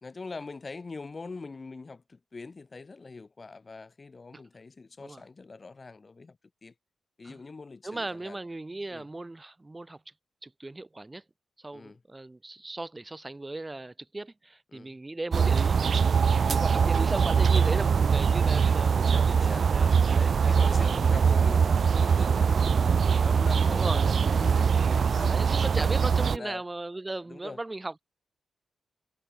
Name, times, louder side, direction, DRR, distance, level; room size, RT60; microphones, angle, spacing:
voice 1, 0.0-6.4 6.6-6.7 7.2-8.4 8.9-9.1 11.7-12.0 14.7-15.0 16.4-16.9 18.5-19.6 20.4-25.7 26.2-26.6 27.3-27.6, left 4 dB, 30° left, 2.4 m, -43 dB
voice 2, 7.8-10.0 10.4-11.2 11.6-15.8 16.1-20.7 21.2-21.5 23.7-24.0 25.3-28.0, right 2 dB, 15° right, 4.4 m, -37 dB
sound 1, 15.3-26.4, right 6 dB, 50° right, 0.5 m, -23 dB
wide cardioid pair, 140°, 0 cm